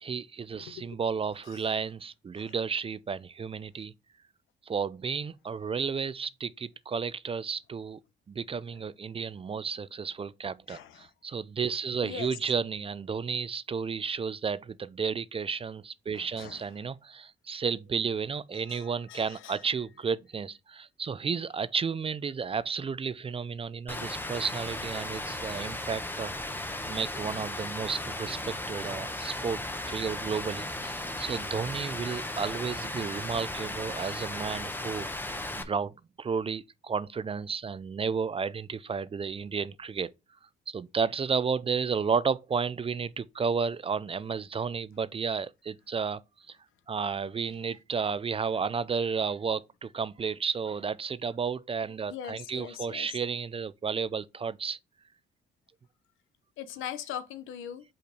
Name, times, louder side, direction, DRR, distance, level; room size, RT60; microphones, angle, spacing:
voice 1, 0.0-3.9 4.7-8.0 8.3-26.3 26.9-35.1 35.6-40.1 40.7-46.2 46.5-46.6 46.9-54.8, right 5 dB, 30° right, 0.4 m, -32 dB
voice 2, 19.1-19.5 52.1-53.1 56.6-57.8, left 9 dB, 85° left, 0.8 m, -40 dB
Rain, 23.9-35.6, left 1 dB, 10° left, 0.9 m, -36 dB
5.4 x 4.3 x 5.0 m
cardioid pair, 90°, 20 cm